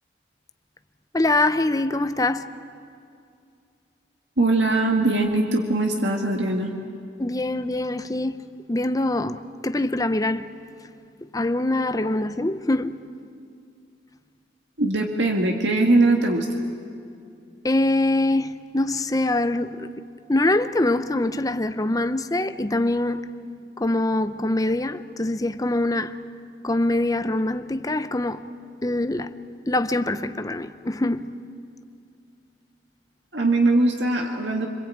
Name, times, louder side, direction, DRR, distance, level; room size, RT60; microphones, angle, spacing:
voice 1, 1.1-2.5 7.2-8.4 8.7-10.5 11.3-13.0 17.6-19.9 20.3-23.3 23.8-26.2 26.6-28.5 28.8-29.3 29.7-31.3, left 2 dB, 20° left, 0.6 m, -24 dB
voice 2, 4.4-6.7 14.8-16.5 33.3-34.7, right 2 dB, 75° right, 2.0 m, -21 dB
27.0 x 25.0 x 8.7 m
head